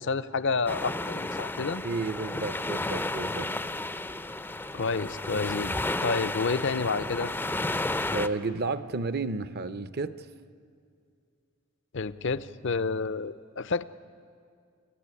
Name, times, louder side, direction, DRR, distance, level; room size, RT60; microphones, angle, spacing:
voice 1, 0.0-1.8 4.7-5.7 6.0-7.3 11.9-13.8, left 4 dB, 55° left, 0.6 m, -29 dB
sound 1, 0.7-8.3, left 2 dB, 10° left, 0.5 m, -32 dB
voice 2, 1.8-3.5 8.1-10.3, right 3 dB, 45° right, 0.7 m, -32 dB
30.0 x 14.5 x 9.8 m
head